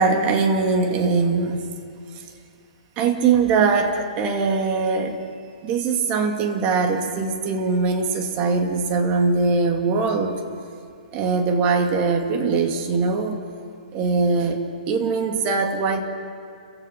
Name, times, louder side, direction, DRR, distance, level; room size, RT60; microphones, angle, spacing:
voice 1, 0.0-1.7 3.0-5.2 5.6-10.4 11.1-13.4 13.9-16.0, right 4 dB, 30° right, 4 dB, 2.6 m, -21 dB
30.0 x 16.0 x 5.9 m, 2.4 s
hypercardioid pair, 130°, 4 cm